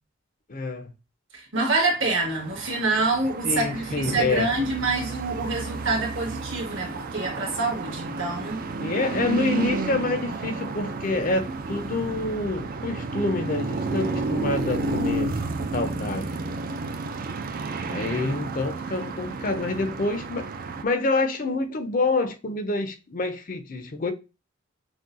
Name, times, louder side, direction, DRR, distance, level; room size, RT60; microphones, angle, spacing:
voice 1, 0.5-0.9 3.4-4.5 8.8-15.3 15.7-16.3 17.9-20.5 20.8-24.1, left 3 dB, 40° left, 0.5 m, -27 dB
voice 2, 1.3-8.6, right 3 dB, 65° right, 1.7 m, -26 dB
sound 1, 2.0-20.8, right 3 dB, 45° right, 0.4 m, -31 dB
6.1 x 2.2 x 2.6 m
head